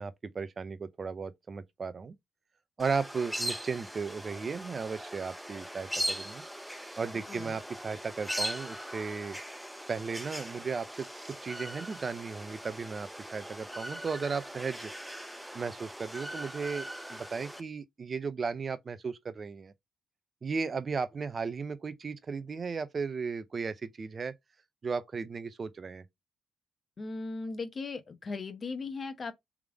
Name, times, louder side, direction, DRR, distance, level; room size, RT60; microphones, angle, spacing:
voice 1, 0.0-2.1 2.8-6.4 7.0-9.4 9.9-11.1 11.4-14.9 15.5-19.7 20.4-24.3 24.8-26.0, right 5 dB, 40° right, 0.6 m, -35 dB
sound 1, 2.8-17.6, equal, 5° right, 0.6 m, -40 dB
voice 2, 7.1-7.6 27.0-29.3, left 4 dB, 35° left, 0.9 m, -38 dB
3.6 x 3.3 x 3.5 m
cardioid pair, 90°, 0 cm